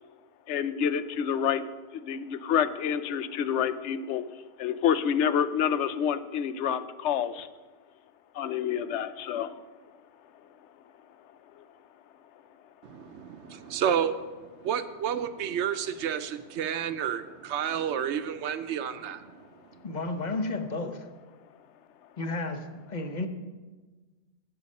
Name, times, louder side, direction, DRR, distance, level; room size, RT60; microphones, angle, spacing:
voice 1, 0.5-7.5 8.3-9.6, left 8 dB, 85° left, 14 dB, 0.9 m, -28 dB
voice 2, 12.8-19.8, right 8 dB, 80° right, 11 dB, 0.9 m, -31 dB
voice 3, 19.8-21.1 22.2-23.3, left 2 dB, 45° left, 7 dB, 0.9 m, -32 dB
11.5 x 7.6 x 5.3 m, 1.3 s
omnidirectional pair, 1.1 m